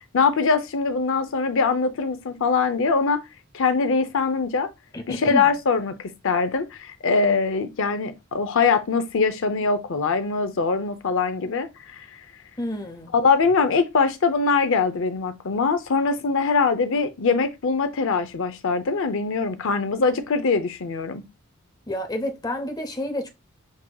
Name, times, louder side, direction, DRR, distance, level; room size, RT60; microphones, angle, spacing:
voice 1, 0.1-3.2 3.5-4.7 5.1-12.1 13.1-21.2, left 4 dB, 65° left, 0.6 m, -22 dB
voice 2, 4.9-5.5 12.6-13.1 21.9-23.3, left 1 dB, 20° left, 0.7 m, -29 dB
6.0 x 2.8 x 2.3 m
head